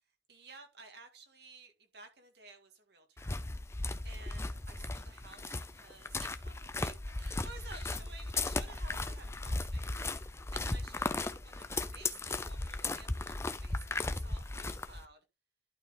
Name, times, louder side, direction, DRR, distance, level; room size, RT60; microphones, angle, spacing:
voice 1, 0.3-3.3 4.0-15.2, right 4 dB, 60° right, 2.1 m, -54 dB
sound 1, 3.2-15.1, left 2 dB, 15° left, 0.5 m, -36 dB
11.5 x 4.9 x 3.8 m
head